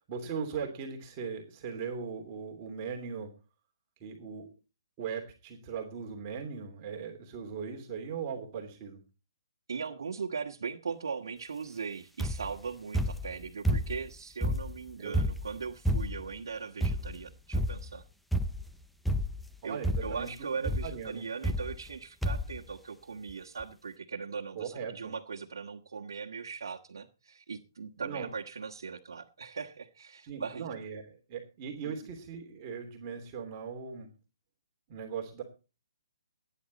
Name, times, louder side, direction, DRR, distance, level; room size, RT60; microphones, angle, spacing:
voice 1, 0.1-3.3 4.0-4.5 5.0-9.0 15.0-15.2 19.6-21.2 24.6-25.1 28.0-28.3 30.2-34.1 34.9-35.4, right 6 dB, 25° right, 2 dB, 3.0 m, -39 dB
voice 2, 9.7-18.0 19.6-30.7 31.8-32.0, right 5 dB, 70° right, 0 dB, 1.6 m, -39 dB
sound 1, 12.2-12.6 12.9-14.1 14.4-16.3 16.8-17.2 17.5-18.0 18.3-18.7 19.1-19.5 19.8-20.3 20.6-21.0 21.4-22.0 22.2-22.6 23.3-23.4 23.6-23.7, equal, ahead, 0.6 m, -30 dB
19.5 x 10.0 x 4.2 m, 0.33 s
hypercardioid pair, 165°, 2 cm